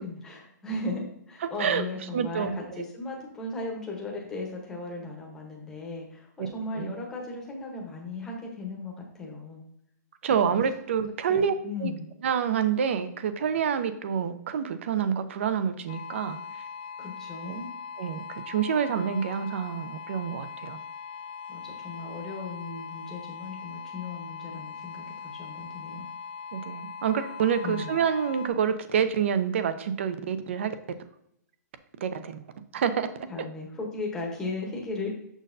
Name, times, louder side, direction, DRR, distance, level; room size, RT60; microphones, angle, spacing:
voice 1, 0.0-9.6 10.4-10.5 11.3-12.1 17.0-17.7 21.5-26.1 27.6-28.0 33.3-35.1, left 3 dB, 5° left, -1 dB, 0.9 m, -36 dB
voice 2, 1.4-1.8 2.1-2.6 6.8-7.0 10.2-11.5 11.8-11.9 12.2-16.4 17.5-17.6 18.0-20.8 26.5-30.7 32.0-32.4 32.7-33.1, right 7 dB, 45° right, 11 dB, 0.5 m, -27 dB
sound 1, 15.9-28.5, left 6 dB, 30° left, 0.3 m, -41 dB
6.4 x 6.2 x 2.6 m, 0.74 s
hypercardioid pair, 175°, 9 cm